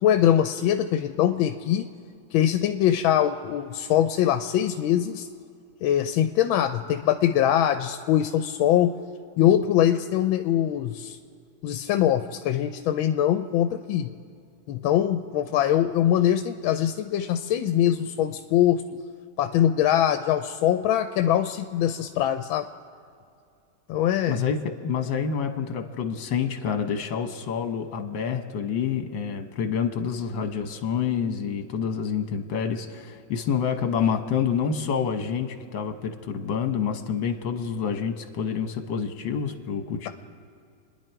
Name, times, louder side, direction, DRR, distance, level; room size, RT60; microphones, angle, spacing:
voice 1, 0.0-1.9 2.3-5.3 5.8-8.9 9.4-11.2 11.6-14.1 14.7-18.8 19.4-22.7 23.9-24.4, left 11 dB, 85° left, 8 dB, 1.4 m, -22 dB
voice 2, 24.3-40.1, left 7 dB, 70° left, 7 dB, 1.8 m, -28 dB
29.5 x 10.5 x 4.6 m, 2.4 s
omnidirectional pair, 2.2 m